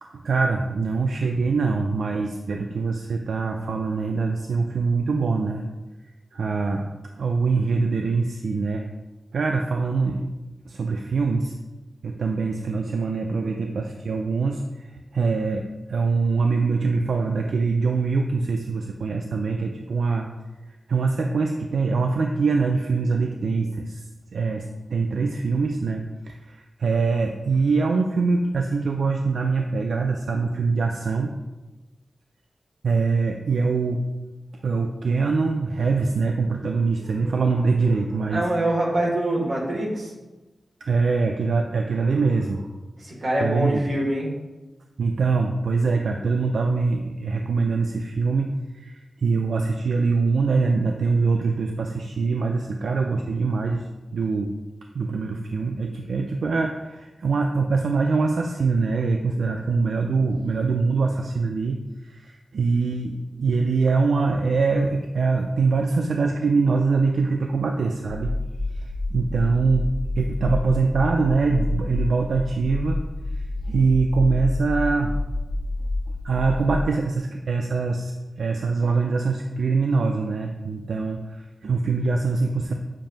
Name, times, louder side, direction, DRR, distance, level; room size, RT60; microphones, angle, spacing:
voice 1, 0.1-5.6 6.3-6.9 7.2-8.9 9.3-10.3 10.7-11.5 12.0-20.3 20.9-31.3 32.8-34.0 34.6-38.5 40.8-42.7 43.4-43.8 45.0-53.8 54.1-54.5 54.9-68.3 68.7-73.0 73.3-75.1 76.2-78.1 78.4-82.7, right 4 dB, 85° right, 3 dB, 0.4 m, -23 dB
voice 2, 38.3-40.1 43.0-44.3, right 1 dB, 65° right, -4 dB, 1.9 m, -24 dB
sound 1, 68.1-76.8, left 2 dB, 30° left, 1.0 m, -28 dB
7.5 x 2.6 x 5.1 m, 1.1 s
wide cardioid pair, 100°, 0 cm